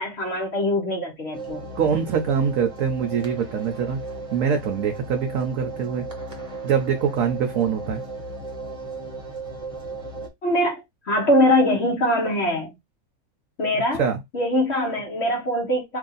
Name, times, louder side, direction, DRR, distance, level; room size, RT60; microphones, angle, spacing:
voice 1, 0.0-1.7 10.4-12.7 13.6-14.0 14.3-16.0, left 1 dB, 50° left, 1.3 m, -22 dB
sound 1, 1.3-10.3, right 3 dB, 25° right, 1.0 m, -35 dB
voice 2, 1.8-4.0 4.3-6.1 6.6-8.0 14.0-14.2, right 7 dB, 70° right, 1.1 m, -23 dB
3.0 x 2.7 x 3.9 m
omnidirectional pair, 1.5 m